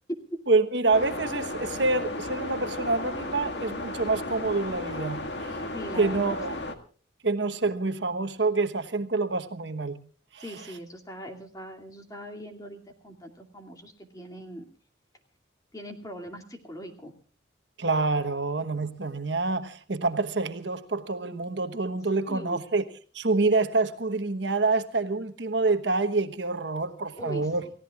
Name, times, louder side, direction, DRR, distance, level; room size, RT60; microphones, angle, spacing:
voice 1, 0.5-5.6 6.0-6.5 7.2-10.0 10.3-10.4 17.8-22.9 23.1-27.6, right 3 dB, 65° right, 1.2 m, -27 dB
sound 1, 0.9-6.7, left 2 dB, 65° left, 1.9 m, -34 dB
voice 2, 5.7-6.4 10.4-14.7 15.7-17.1 22.3-22.6 27.1-27.7, equal, 20° left, 2.4 m, -40 dB
29.5 x 16.0 x 2.4 m
head